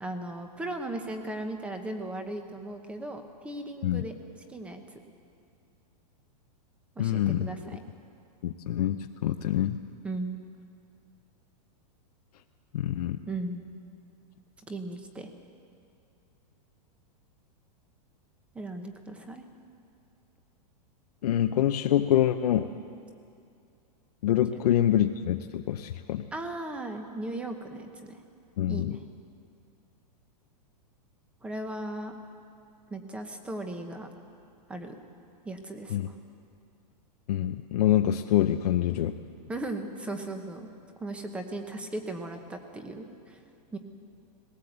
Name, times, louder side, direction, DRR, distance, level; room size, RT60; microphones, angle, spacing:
voice 1, 0.0-4.1 4.5-4.8 7.0-7.8 10.0-10.4 13.3-13.6 14.7-15.3 18.5-19.4 24.5-24.6 26.3-28.2 28.7-29.1 31.4-32.1 32.9-34.1 34.7-34.9 35.4-36.1 39.5-40.7 41.0-43.4 43.7-43.8, right 2 dB, 5° right, 6 dB, 1.0 m, -37 dB
voice 2, 7.0-7.5 8.4-9.8 12.7-13.2 21.2-22.7 24.2-26.3 28.6-29.0 35.9-36.1 37.3-39.1, left 11 dB, 65° left, 5 dB, 0.8 m, -25 dB
20.0 x 18.0 x 8.0 m, 2.5 s
supercardioid pair, 170°, 21 cm